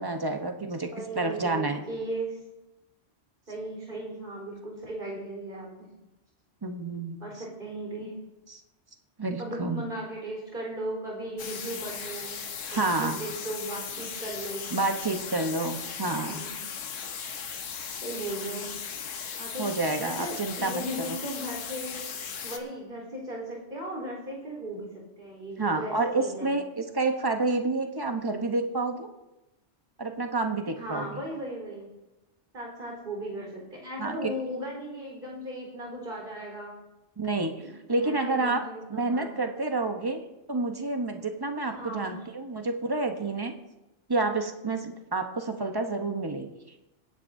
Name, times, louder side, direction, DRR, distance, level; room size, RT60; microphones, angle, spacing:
voice 1, 0.0-0.9 1.1-1.8 6.6-7.2 8.5-8.6 9.2-9.8 12.6-13.2 14.7-16.4 19.6-21.2 25.6-29.1 30.0-31.2 34.0-34.3 37.2-37.5 37.9-38.6 38.9-40.2 40.5-43.5 44.1-46.5, right 3 dB, 20° right, 5 dB, 0.9 m, -29 dB
voice 2, 0.9-2.4 3.5-5.9 7.2-8.1 9.4-12.4 12.7-14.7 16.0-16.6 18.0-18.7 19.4-19.7 20.0-22.0 22.4-24.9 25.2-26.5 30.8-31.9 32.5-36.8 37.6-39.3 41.7-42.2, right 1 dB, 45° right, -2 dB, 4.3 m, -37 dB
sound 1, 11.4-22.6, left 6 dB, 90° left, 1.3 m, -37 dB
22.5 x 9.9 x 2.7 m, 0.99 s
omnidirectional pair, 1.3 m